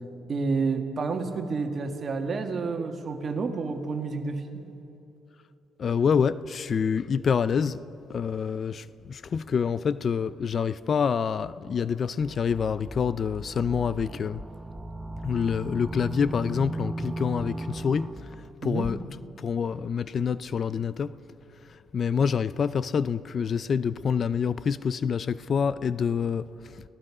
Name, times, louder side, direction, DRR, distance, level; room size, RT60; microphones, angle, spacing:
voice 1, 0.3-4.4 18.6-18.9, right 4 dB, 45° right, 2.0 m, -29 dB
voice 2, 5.8-7.8 8.1-14.4 15.2-18.1 18.6-19.0 19.4-21.1 21.7-26.8, left 6 dB, 50° left, 0.5 m, -27 dB
sound 1, 12.2-18.5, right 2 dB, 15° right, 0.9 m, -37 dB
30.0 x 18.0 x 4.9 m
cardioid pair, 90°, 0 cm